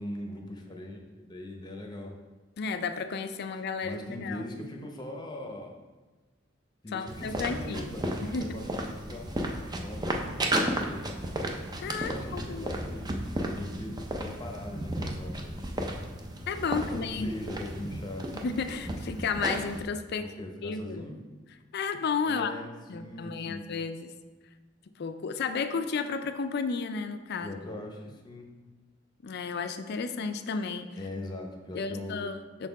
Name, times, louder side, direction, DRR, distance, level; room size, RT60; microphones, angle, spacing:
voice 1, 0.0-2.2 3.8-5.8 6.8-9.3 9.8-11.1 12.1-15.6 16.7-18.3 20.2-21.2 22.2-23.6 27.4-28.5 31.0-32.3, left 1 dB, 20° left, 2 dB, 0.8 m, -40 dB
voice 2, 2.6-4.4 6.9-7.9 8.2-8.5 11.8-12.7 16.5-17.3 18.4-20.3 20.6-21.0 21.7-22.5 22.9-24.1 25.0-27.6 29.2-30.9 31.7-32.7, left 5 dB, 55° left, 9 dB, 0.4 m, -32 dB
sound 1, 7.1-19.8, right 1 dB, 20° right, 0.5 m, -34 dB
6.1 x 4.2 x 4.0 m, 1.2 s
head